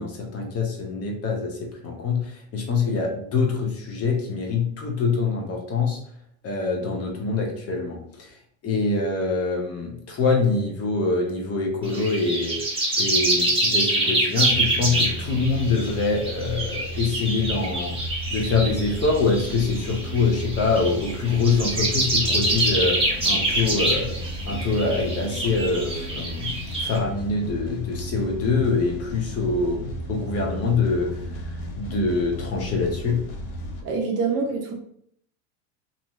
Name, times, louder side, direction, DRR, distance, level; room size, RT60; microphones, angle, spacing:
voice 1, 0.0-6.0 6.4-8.3 8.6-12.6 13.0-17.9 18.3-24.2 24.5-31.1 31.8-33.2, left 4 dB, 35° left, 1 dB, 0.8 m, -25 dB
sound 1, 11.8-27.0, right 1 dB, 15° right, 1.0 m, -26 dB
sound 2, 14.5-33.8, equal, 85° left, 0.8 m, -34 dB
voice 2, 33.8-34.7, right 4 dB, 35° right, 1 dB, 0.5 m, -25 dB
2.6 x 2.1 x 3.0 m, 0.66 s
supercardioid pair, 110°, 43 cm